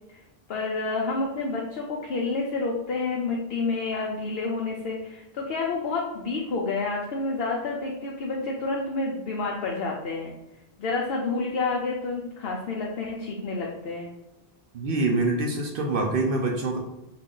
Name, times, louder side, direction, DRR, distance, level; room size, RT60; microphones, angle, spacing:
voice 1, 0.5-10.3 10.8-14.1, left 3 dB, 60° left, -2 dB, 0.8 m, -29 dB
voice 2, 14.7-16.8, right 2 dB, 60° right, 1 dB, 0.7 m, -25 dB
3.7 x 2.3 x 3.7 m, 0.92 s
omnidirectional pair, 1.2 m